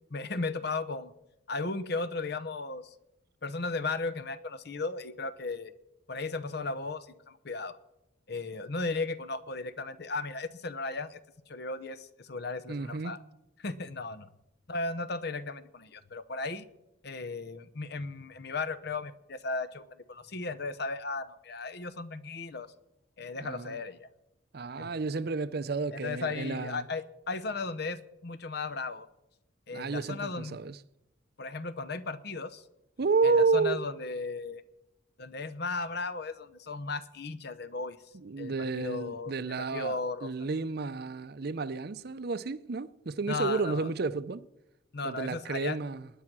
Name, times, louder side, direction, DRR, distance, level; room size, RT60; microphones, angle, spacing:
voice 1, 0.1-1.1 1.5-2.9 3.4-5.7 6.1-7.8 8.3-11.2 11.5-13.2 13.6-14.3 14.7-16.6 17.0-19.8 20.1-22.7 23.2-24.1 24.8-24.9 25.9-29.1 29.7-30.6 31.4-32.6 33.2-34.6 35.2-38.0 38.4-40.3 43.3-43.9 44.9-45.8, left 3 dB, 55° left, 0.8 m, -36 dB
voice 2, 12.7-13.2 23.4-23.8 24.5-26.8 29.7-30.8 33.0-33.8 38.1-44.4 45.0-46.1, right 4 dB, 50° right, 0.6 m, -31 dB
19.5 x 9.8 x 6.1 m
head